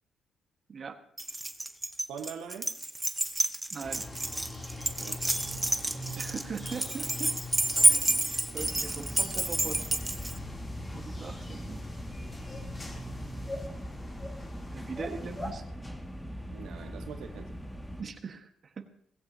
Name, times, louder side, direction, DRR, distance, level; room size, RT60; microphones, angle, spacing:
Keys jangling, 1.2-10.4, right 2 dB, 15° right, 0.9 m, -29 dB
voice 1, 2.1-2.7 5.0-5.4 16.5-17.5, right 7 dB, 85° right, 5 dB, 1.2 m, -42 dB
voice 2, 3.7-4.1 6.2-7.3 7.9-10.0 10.9-11.8 14.7-15.6 18.0-18.9, right 5 dB, 45° right, 6 dB, 1.4 m, -40 dB
sound 1, 3.8-15.5, left 1 dB, 25° left, 2.9 m, -42 dB
sound 2, 8.6-18.0, equal, 5° left, 2.0 m, -41 dB
18.5 x 16.0 x 2.8 m, 0.66 s
cardioid pair, 90°, 0 cm